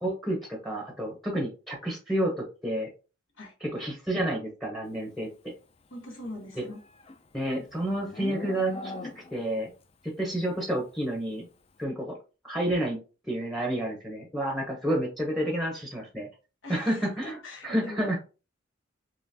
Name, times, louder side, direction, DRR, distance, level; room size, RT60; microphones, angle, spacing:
voice 1, 0.0-2.9 3.6-5.3 6.5-6.6 7.3-9.7 10.0-11.5 11.8-12.1 12.4-13.0 13.3-16.3 16.7-18.2, right 1 dB, ahead, 0 dB, 0.8 m, -30 dB
voice 2, 3.4-3.8 5.9-6.8 11.9-12.1 16.6-18.2, left 2 dB, 85° left, 0 dB, 1.3 m, -42 dB
Livestock farm animals working animals, 6.3-9.6, left 3 dB, 30° left, 0.3 m, -40 dB
3.7 x 2.9 x 2.7 m, 0.33 s
head